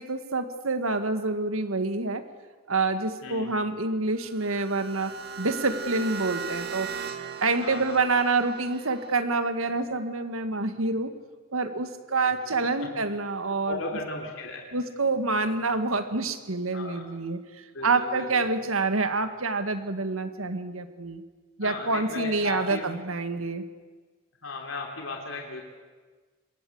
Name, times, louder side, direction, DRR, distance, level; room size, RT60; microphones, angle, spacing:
voice 1, 0.0-2.2 2.7-6.9 7.4-11.1 11.5-13.8 14.7-17.4 17.8-21.2 21.6-23.6, right 3 dB, 85° right, 9 dB, 1.9 m, -27 dB
voice 2, 3.2-3.6 7.6-8.0 12.2-12.9 13.5-14.6 16.7-17.1 17.7-18.5 21.6-23.0 24.4-25.6, left 3 dB, 75° left, 1 dB, 3.4 m, -36 dB
sound 1, 4.2-9.2, right 6 dB, 50° right, 2.1 m, -38 dB
26.0 x 21.5 x 8.0 m, 1.4 s
head